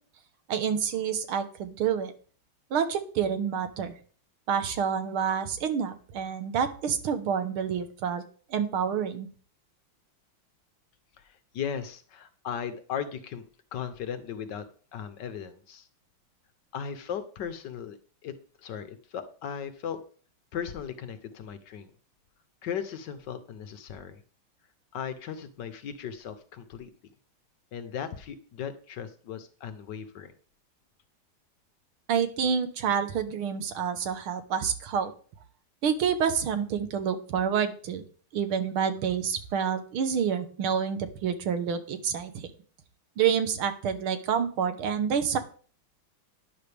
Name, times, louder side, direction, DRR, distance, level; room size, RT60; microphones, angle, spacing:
voice 1, 0.5-2.1 2.7-3.9 4.5-8.2 8.5-9.3 32.1-35.1 35.8-38.0 38.3-42.5 43.2-45.4, right 7 dB, 90° right, 10 dB, 2.0 m, -28 dB
voice 2, 11.2-13.4 13.7-14.6 14.9-15.9 16.7-18.0 18.2-18.3 18.6-20.0 20.5-21.9 22.6-24.2 24.9-26.9 27.7-30.3, left 8 dB, 65° left, 11 dB, 1.4 m, -37 dB
11.5 x 10.0 x 3.4 m, 0.42 s
omnidirectional pair, 2.3 m